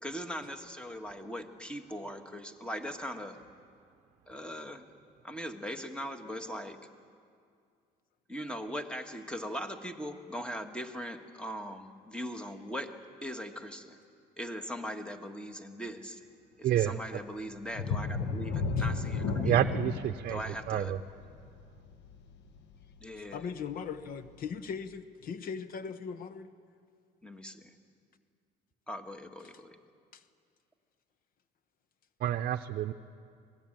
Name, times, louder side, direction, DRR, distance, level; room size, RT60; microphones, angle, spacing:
voice 1, 0.0-3.4 4.3-4.8 5.2-6.8 8.3-14.0 14.4-16.2 16.6-19.7 20.3-21.0 23.0-23.4 27.2-27.6 28.9-29.8, equal, 5° left, 6 dB, 1.6 m, -40 dB
sound 1, 17.7-23.2 23.6-23.8 24.3-24.4, left 4 dB, 90° left, 1.4 m, -34 dB
voice 2, 19.4-20.4 20.7-21.0 32.2-32.9, right 11 dB, 60° right, 6 dB, 0.7 m, -28 dB
voice 3, 23.2-26.5 30.1-30.2, left 6 dB, 60° left, 11 dB, 1.0 m, -39 dB
25.0 x 19.0 x 9.0 m, 2.3 s
cardioid pair, 110°, 17 cm